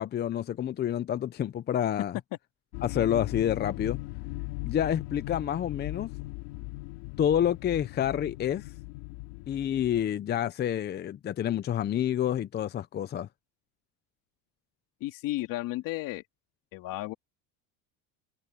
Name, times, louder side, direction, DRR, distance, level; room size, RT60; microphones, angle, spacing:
voice 1, 0.0-2.2 2.8-4.0 4.6-6.1 7.2-8.7 9.5-13.3, left 10 dB, 30° left, 0.6 m, -28 dB
sound 1, 2.7-10.1, left 21 dB, 80° left, 3.7 m, -38 dB
voice 2, 15.0-16.2 16.7-17.1, left 17 dB, 60° left, 2.7 m, -33 dB
cardioid pair, 135°, 37 cm